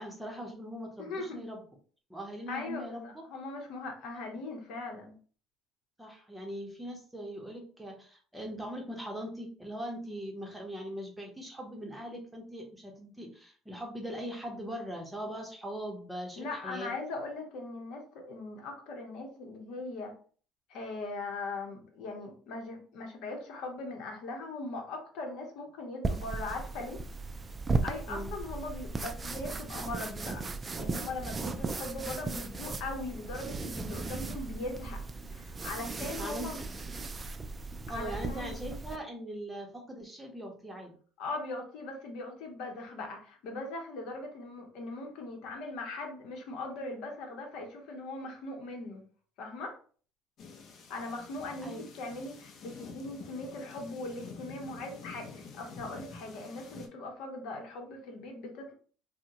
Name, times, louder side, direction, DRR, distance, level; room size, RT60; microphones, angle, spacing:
voice 1, 0.0-1.6 2.1-3.2 4.1-4.3 6.0-16.9 28.1-28.3 36.2-36.6 37.9-40.9 51.6-51.8, equal, 5° right, 1 dB, 0.8 m, -41 dB
voice 2, 1.0-1.4 2.5-5.2 16.4-20.1 20.7-27.4 27.8-30.5 30.8-35.0 35.3-36.6 37.9-38.6 41.2-49.0 49.4-49.8 50.9-58.7, left 2 dB, 70° left, 3 dB, 0.8 m, -40 dB
sound 1, 26.0-39.0, right 3 dB, 20° right, 0.3 m, -36 dB
sound 2, 50.4-56.9, left 5 dB, 55° left, 0.6 m, -48 dB
3.5 x 2.1 x 2.8 m, 0.43 s
cardioid pair, 130°, 0 cm